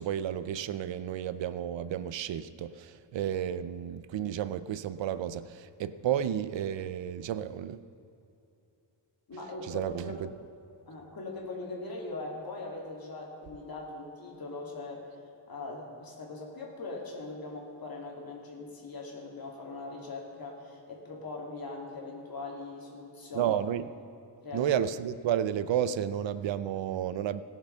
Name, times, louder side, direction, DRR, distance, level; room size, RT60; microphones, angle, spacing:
voice 1, 0.0-7.8 9.7-10.3 23.3-23.9 24.5-27.4, right 10 dB, 85° right, 0.6 m, -32 dB
voice 2, 9.3-10.3 10.9-15.1 15.5-23.5 24.4-24.7, left 3 dB, 55° left, 2.6 m, -41 dB
18.5 x 7.0 x 5.6 m
wide cardioid pair, 155°, 43 cm